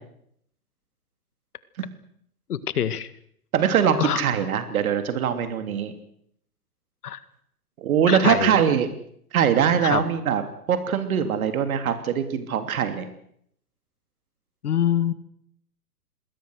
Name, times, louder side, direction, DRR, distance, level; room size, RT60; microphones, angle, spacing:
voice 1, 2.5-3.1 4.0-4.2 7.0-7.2 8.1-8.6 9.8-10.0 14.6-15.1, left 10 dB, 70° left, 14 dB, 2.1 m, -24 dB
voice 2, 3.5-5.9 7.8-8.9 9.3-10.4 10.7-13.1, right 8 dB, 60° right, 9 dB, 3.2 m, -22 dB
27.0 x 20.5 x 6.5 m, 0.69 s
hypercardioid pair, 130°, 47 cm